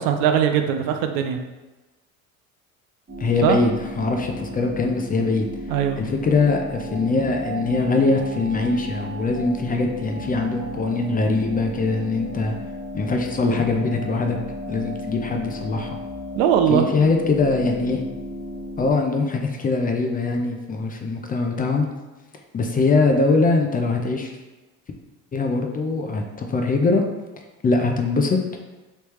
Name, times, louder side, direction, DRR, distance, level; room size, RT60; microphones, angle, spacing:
voice 1, 0.0-1.4 3.4-3.6 5.7-6.0 16.4-16.8, right 9 dB, 75° right, 6 dB, 0.5 m, -20 dB
sound 1, 3.1-18.9, equal, 25° right, 1.1 m, -34 dB
voice 2, 3.2-5.5 6.0-12.6 12.9-14.4 14.7-15.9 16.7-18.0 18.8-21.9 22.5-24.3 25.3-27.0 27.6-28.6, left 3 dB, 25° left, 3 dB, 0.4 m, -22 dB
3.3 x 3.1 x 3.1 m, 1.2 s
supercardioid pair, 85°, 39 cm